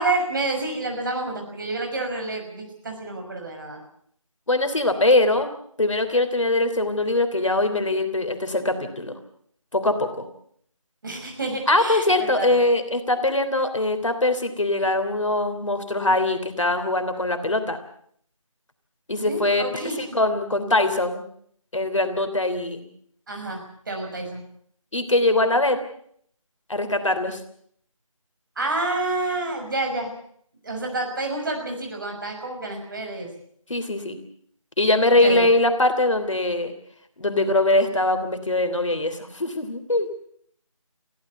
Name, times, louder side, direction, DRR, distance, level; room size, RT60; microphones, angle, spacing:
voice 1, 0.0-3.8 11.0-12.6 19.2-20.2 23.3-24.4 28.6-30.1 30.6-33.3 35.1-35.5, right 2 dB, 35° right, 2 dB, 5.9 m, -29 dB
voice 2, 4.5-5.5 5.8-9.1 9.7-10.2 11.7-17.8 19.1-19.7 20.0-21.2 21.7-22.8 24.9-25.8 26.7-27.4 33.7-34.2 34.8-36.7 37.2-40.1, left 2 dB, 65° left, 8 dB, 3.2 m, -22 dB
24.0 x 15.5 x 8.2 m, 0.65 s
figure-of-eight pair, 165°, 18 cm